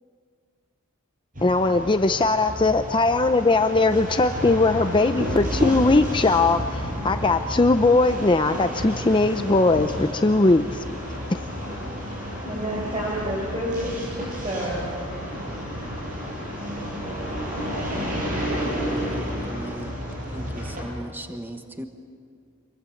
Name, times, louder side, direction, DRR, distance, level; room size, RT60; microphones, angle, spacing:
voice 1, 1.4-10.8 11.3-11.4, left 3 dB, 25° left, 8 dB, 0.6 m, -20 dB
sound 1, 1.4-20.9, equal, 40° right, 7.6 m, -31 dB
voice 2, 12.4-15.9, right 1 dB, 25° right, -5 dB, 5.4 m, -31 dB
voice 3, 18.6-20.0 20.3-21.9, equal, 10° right, 6 dB, 1.2 m, -37 dB
27.0 x 22.5 x 8.5 m, 2.2 s
head